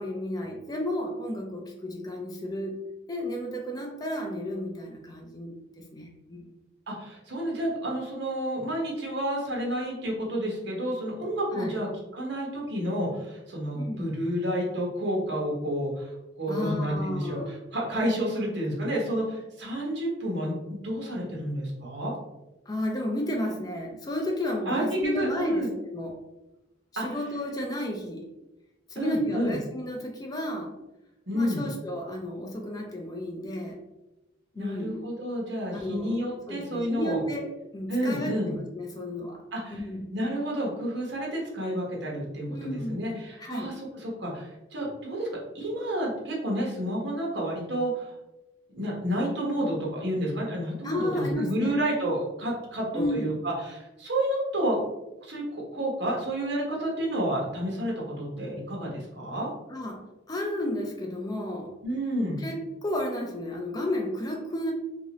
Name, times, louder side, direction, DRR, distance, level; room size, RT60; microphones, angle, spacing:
voice 1, 0.0-2.8 3.1-6.5 11.5-11.7 13.7-14.1 16.5-17.6 22.7-26.2 26.9-28.2 28.9-30.8 31.3-33.8 34.5-35.0 35.7-39.4 39.7-40.1 42.5-43.1 43.4-43.7 50.8-51.8 52.9-53.3 59.7-61.7 62.4-64.7, left 1 dB, 20° left, 0 dB, 0.4 m, -32 dB
voice 2, 6.9-22.1 24.7-25.7 27.0-27.1 28.9-29.6 31.3-31.6 34.6-37.2 37.9-38.5 39.5-39.8 40.1-45.3 45.5-48.1 48.7-54.8 55.2-59.5 61.8-62.4, right 1 dB, 60° right, -2 dB, 1.0 m, -30 dB
2.9 x 2.7 x 2.8 m, 0.96 s
head